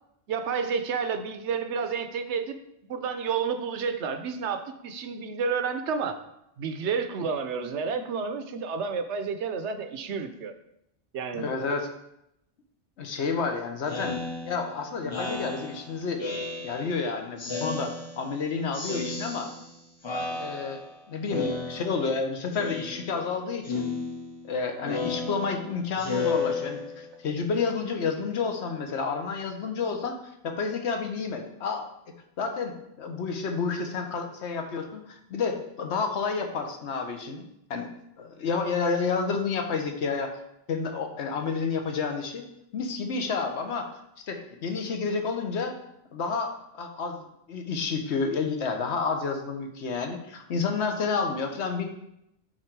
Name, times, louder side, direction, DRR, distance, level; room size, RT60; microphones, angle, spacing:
voice 1, 0.3-2.6 2.9-6.2 6.6-10.5 11.1-11.5, right 5 dB, 75° right, 9 dB, 0.9 m, -30 dB
voice 2, 11.3-11.9 13.0-16.2 16.6-19.5 20.3-20.8 21.1-23.9 24.4-31.9 32.4-37.9 38.2-40.3 40.7-42.4 42.7-43.9 44.3-45.8 46.1-47.2 47.5-51.9, left 5 dB, 70° left, 5 dB, 1.2 m, -30 dB
Speech synthesizer, 13.9-17.0 17.4-18.4 18.7-19.8 20.0-21.0 21.3-22.2 22.5-23.3 23.6-27.2, left 4 dB, 30° left, 0.7 m, -33 dB
8.7 x 3.8 x 4.6 m, 0.82 s
omnidirectional pair, 1.2 m